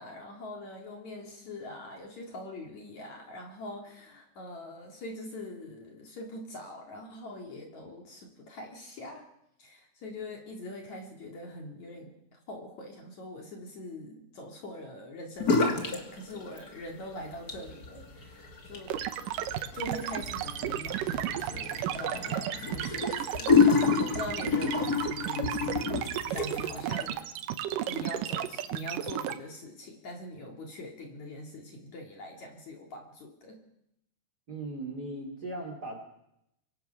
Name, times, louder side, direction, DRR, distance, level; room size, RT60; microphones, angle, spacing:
voice 1, 0.0-9.2 9.6-19.0 19.7-27.3 27.9-33.6, left 1 dB, 50° left, 1 dB, 3.4 m, -43 dB
sound 1, 15.4-16.0 16.3-16.9 17.3-26.8, left 5 dB, 30° left, 2.0 m, -29 dB
sound 2, 18.9-29.3, right 12 dB, 70° right, 2.2 m, -33 dB
voice 2, 34.5-36.0, right 2 dB, 25° right, 4 dB, 3.1 m, -38 dB
24.0 x 23.5 x 5.9 m, 0.81 s
omnidirectional pair, 4.8 m